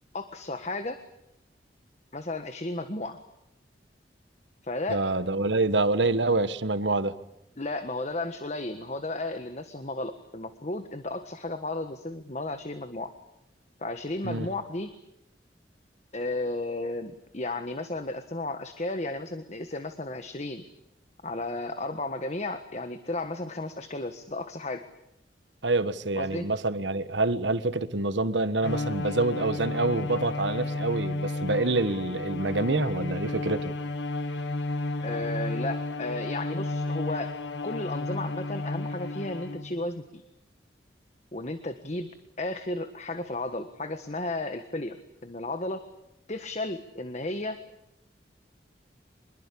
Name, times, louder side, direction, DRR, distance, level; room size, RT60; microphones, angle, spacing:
voice 1, 0.1-1.0 2.1-3.2 4.6-5.0 7.6-13.1 13.8-14.9 16.1-20.6 21.2-24.8 26.1-26.5 35.0-37.3 37.6-40.2 41.3-42.1 42.4-45.9 46.3-47.6, left 2 dB, 40° left, 9 dB, 1.5 m, -34 dB
voice 2, 4.9-7.2 14.2-14.5 25.6-33.7, right 2 dB, 80° right, 13 dB, 1.5 m, -26 dB
Bowed string instrument, 28.6-39.8, left 2 dB, 75° left, 1.7 m, -32 dB
25.5 x 22.0 x 8.6 m, 0.84 s
head